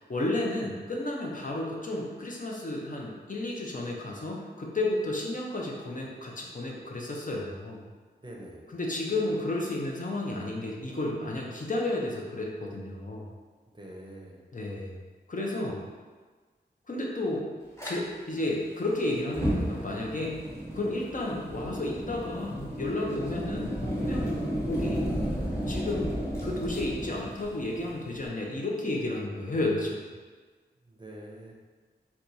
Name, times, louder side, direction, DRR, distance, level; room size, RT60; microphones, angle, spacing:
voice 1, 0.0-7.8 8.7-13.2 14.5-15.0 15.3-15.8 16.9-17.5 17.8-20.4 20.7-23.7 24.0-24.3 24.7-25.1 25.7-30.0, left 2 dB, 45° left, -2 dB, 0.6 m, -32 dB
voice 2, 8.2-8.6 13.7-14.4 30.8-31.5, right 1 dB, 25° right, -3 dB, 0.6 m, -45 dB
Fire, 17.8-17.9 19.2-28.3, equal, 15° left, 0.8 m, -33 dB
4.3 x 2.3 x 2.7 m, 1.4 s
wide cardioid pair, 60°, 18 cm